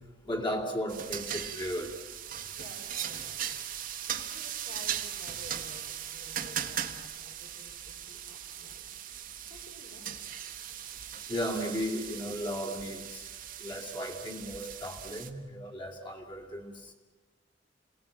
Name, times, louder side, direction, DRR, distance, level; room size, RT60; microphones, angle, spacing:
voice 1, 0.2-1.9 11.3-13.2 13.6-16.7, equal, 25° left, 1 dB, 3.0 m, -35 dB
sound 1, 0.9-15.3, right 9 dB, 50° right, 1.5 m, -39 dB
voice 2, 2.6-3.6 4.1-10.2, equal, 60° left, 1 dB, 4.1 m, -53 dB
27.5 x 18.5 x 8.9 m, 1.3 s
head